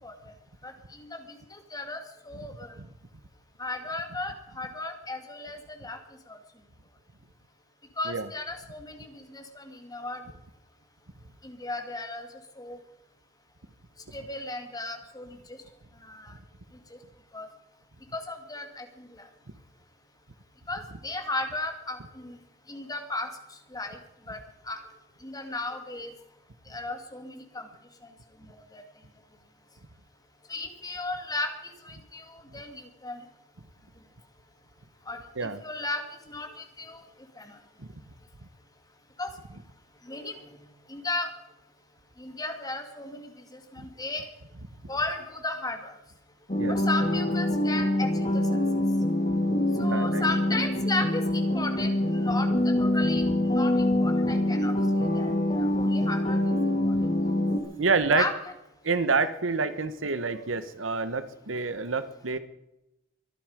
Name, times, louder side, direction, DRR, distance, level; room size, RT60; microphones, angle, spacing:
voice 1, 0.6-1.1 1.5-2.0 2.2-2.8 3.6-6.0 6.3-6.4 8.0-10.2 11.4-12.3 12.6-12.8 14.1-15.4 16.0-16.3 16.9-17.0 17.3-17.5 18.1-19.1 20.7-22.4 22.7-23.3 23.7-24.0 24.3-24.4 24.7-24.8 25.2-26.1 26.7-27.7 28.5-28.8 30.5-31.5 31.8-32.3 32.5-33.2 35.1-36.0 36.3-37.0 37.4-37.6 39.2-39.3 40.1-40.5 40.9-41.3 42.2-44.3 44.9-45.9 46.7-48.4 49.8-52.5 52.8-56.4 56.8-56.9 58.1-58.3 60.1-60.5, left 2 dB, 20° left, 5 dB, 2.5 m, -35 dB
sound 1, 46.5-57.6, left 1 dB, 35° left, 2.2 m, -25 dB
voice 2, 49.8-50.2 57.8-58.3 58.8-62.4, right 4 dB, 80° right, 13 dB, 1.2 m, -28 dB
24.0 x 10.5 x 5.1 m, 0.89 s
head